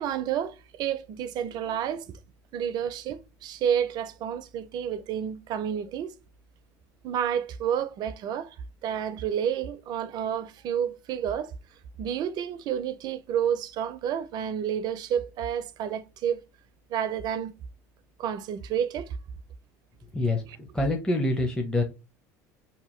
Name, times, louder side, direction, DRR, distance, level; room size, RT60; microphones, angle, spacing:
voice 1, 0.0-2.2 2.5-6.2 7.0-8.6 8.8-11.5 12.0-16.4 16.9-17.5 18.2-19.2 20.5-20.6, right 9 dB, 50° right, 0.4 m, -30 dB
voice 2, 20.1-21.8, left 2 dB, 10° left, 0.6 m, -26 dB
2.8 x 2.1 x 3.1 m
hypercardioid pair, 85°, 9 cm